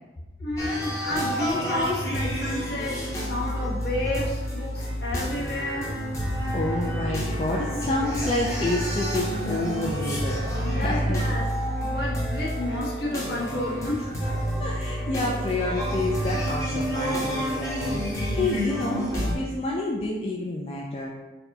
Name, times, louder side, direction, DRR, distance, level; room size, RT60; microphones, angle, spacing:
voice 1, 0.4-6.0 10.6-11.5 11.8-14.1, left 1 dB, 60° left, -5 dB, 1.1 m, -31 dB
sound 1, 0.6-19.3, equal, 20° left, 0.8 m, -29 dB
voice 2, 6.5-10.4 10.7-11.2 14.6-18.0 18.3-19.1 19.3-21.1, left 2 dB, 35° left, -3 dB, 0.4 m, -29 dB
4.2 x 2.3 x 4.0 m, 1.2 s
head